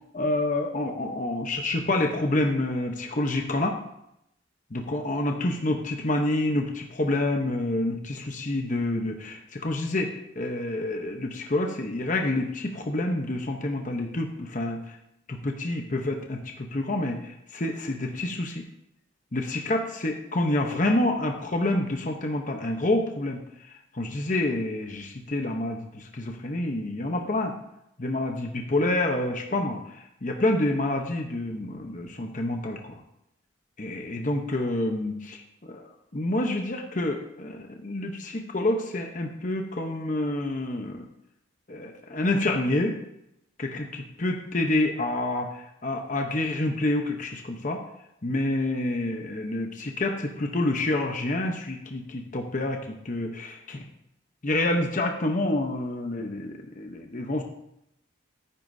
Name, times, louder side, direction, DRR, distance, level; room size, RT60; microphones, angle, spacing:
voice 1, 0.1-3.8 4.7-15.0 15.3-18.6 19.3-23.4 23.9-27.6 28.0-29.8 30.2-33.0 33.8-35.8 36.1-41.1 41.7-43.0 43.6-47.8 48.2-52.8 53.0-53.8 54.4-57.4, left 1 dB, 40° left, 3 dB, 0.9 m, -28 dB
13.0 x 10.0 x 2.7 m, 0.80 s
head